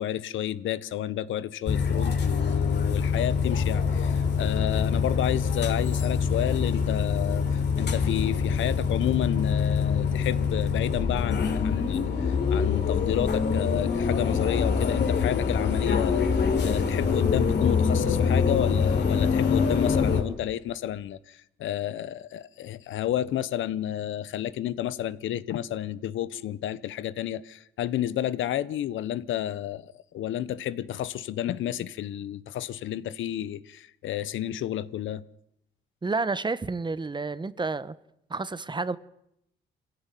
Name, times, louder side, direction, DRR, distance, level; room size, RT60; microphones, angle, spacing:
voice 1, 0.0-16.3 16.6-35.2, left 11 dB, 75° left, 1.1 m, -31 dB
sound 1, 1.7-20.2, left 6 dB, 60° left, 3.8 m, -25 dB
voice 2, 36.0-37.9 38.3-39.0, right 3 dB, 25° right, 1.1 m, -30 dB
24.0 x 16.5 x 9.2 m
cardioid pair, 90°, 20 cm